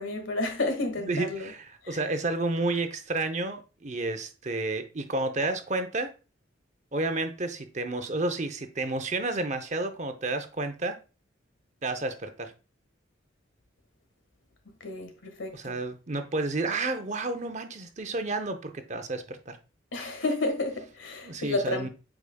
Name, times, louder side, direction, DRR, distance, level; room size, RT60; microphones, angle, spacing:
voice 1, 0.0-1.5 1.8-2.0 14.8-15.8 19.9-21.9, left 2 dB, 75° left, 1.6 m, -31 dB
voice 2, 1.1-6.1 6.9-11.0 11.8-12.5 15.5-19.6 21.2-21.9, right 2 dB, 35° right, 0.7 m, -31 dB
8.3 x 5.0 x 2.3 m
head